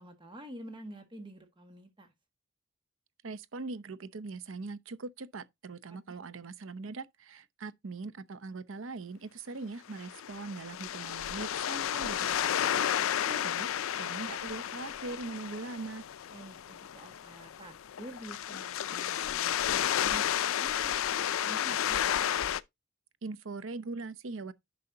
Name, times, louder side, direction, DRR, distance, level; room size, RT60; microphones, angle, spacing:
voice 1, 0.0-2.1 6.1-6.2 16.3-22.0, right 1 dB, 25° right, 1.6 m, -48 dB
voice 2, 3.2-12.8 13.2-13.7 14.0-16.0 23.2-24.5, right 3 dB, 70° right, 0.7 m, -41 dB
sound 1, 9.9-22.6, left 10 dB, 75° left, 0.4 m, -32 dB
10.5 x 5.6 x 2.7 m
head